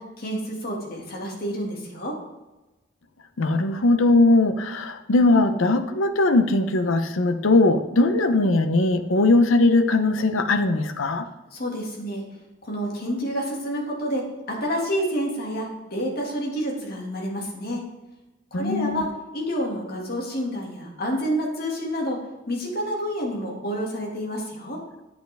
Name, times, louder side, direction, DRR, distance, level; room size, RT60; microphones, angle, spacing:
voice 1, 0.0-2.2 11.5-12.2 12.6-17.9 18.5-24.8, equal, 50° left, -1 dB, 2.1 m, -29 dB
voice 2, 3.4-11.3 18.5-19.1, left 2 dB, 75° left, 10 dB, 0.7 m, -20 dB
9.1 x 8.1 x 3.4 m, 1.1 s
head